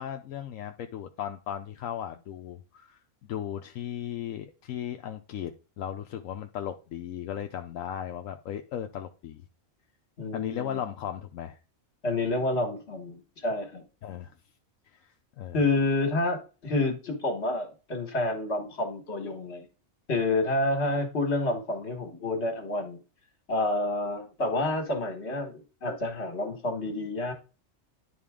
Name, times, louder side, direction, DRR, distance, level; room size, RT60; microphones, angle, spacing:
voice 1, 0.0-9.4 10.3-11.6 14.0-14.3 14.8-15.6, left 10 dB, 80° left, 1.0 m, -36 dB
voice 2, 10.2-10.8 12.0-13.8 15.5-19.7 20.1-23.0 23.5-27.3, left 2 dB, 55° left, 1.9 m, -29 dB
10.5 x 4.1 x 3.7 m
omnidirectional pair, 1.3 m